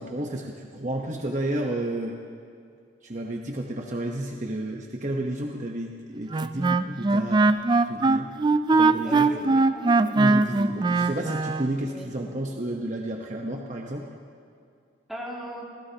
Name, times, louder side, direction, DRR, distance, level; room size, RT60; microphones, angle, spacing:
voice 1, 0.0-2.1 3.0-7.5 7.9-8.3 8.7-9.3 10.1-14.0, right 1 dB, 40° right, 0 dB, 1.0 m, -31 dB
Wind instrument woodwind instrument, 6.3-11.7, right 3 dB, 25° right, 0.3 m, -21 dB
voice 2, 9.0-10.2 11.8-12.1 15.1-15.6, equal, ahead, -5 dB, 2.3 m, -38 dB
26.5 x 16.5 x 2.9 m, 2.3 s
head